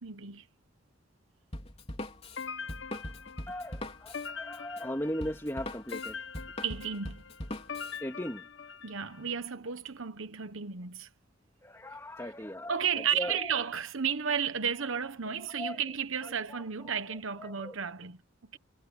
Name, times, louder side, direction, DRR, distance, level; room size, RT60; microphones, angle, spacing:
voice 1, 0.0-0.5 6.6-7.2 8.8-11.1 12.7-18.2 18.5-18.6, right 7 dB, 75° right, 1.1 m, -33 dB
Drum kit, 1.5-8.0, left 1 dB, 30° left, 3.9 m, -41 dB
sound 1, 2.4-9.3, left 6 dB, 60° left, 0.8 m, -43 dB
voice 2, 3.5-6.2 8.0-8.5 11.6-13.5 15.3-15.8 16.5-17.7, equal, 15° left, 2.6 m, -38 dB
head